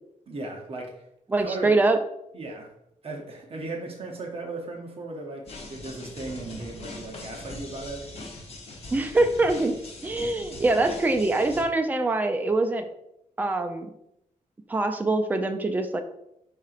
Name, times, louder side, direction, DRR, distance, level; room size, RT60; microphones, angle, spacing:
voice 1, 0.3-1.1 1.4-1.8 2.3-2.8 3.0-8.1, right 2 dB, 40° right, 1 dB, 0.7 m, -37 dB
voice 2, 1.3-2.0 8.9-9.7 10.0-12.9 13.4-13.9 14.7-16.0, right 2 dB, 10° right, 6 dB, 0.3 m, -24 dB
sound 1, 5.5-11.6, left 2 dB, 45° left, 0.8 m, -41 dB
4.8 x 4.2 x 2.5 m, 0.79 s
wide cardioid pair, 170°, 14 cm